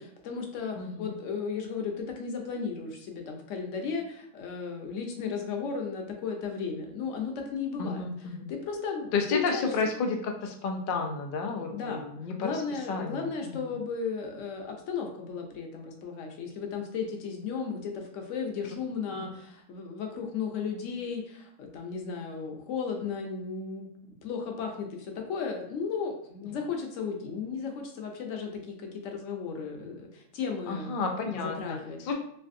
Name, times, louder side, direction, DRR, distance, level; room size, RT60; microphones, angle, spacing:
voice 1, 0.0-8.0 8.5-9.7 11.7-12.1 12.4-31.0 31.4-32.0, left 5 dB, 65° left, 2 dB, 0.9 m, -35 dB
voice 2, 0.8-1.1 7.8-8.5 9.1-12.6 12.9-13.7 19.1-19.3 30.7-32.1, left 4 dB, 85° left, 2 dB, 0.4 m, -32 dB
3.3 x 2.6 x 2.5 m, 0.71 s
omnidirectional pair, 1.5 m